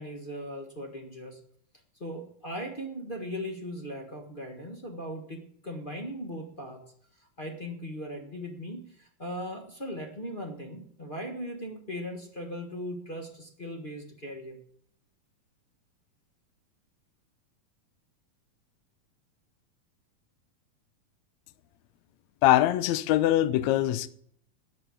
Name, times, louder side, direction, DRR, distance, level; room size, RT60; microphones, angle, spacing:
voice 1, 0.0-1.4 2.0-6.8 7.2-14.6, equal, 50° left, 0.6 m, -38 dB
voice 2, 22.4-24.1, left 14 dB, 75° left, 1.7 m, -23 dB
12.5 x 7.8 x 8.5 m
omnidirectional pair, 3.7 m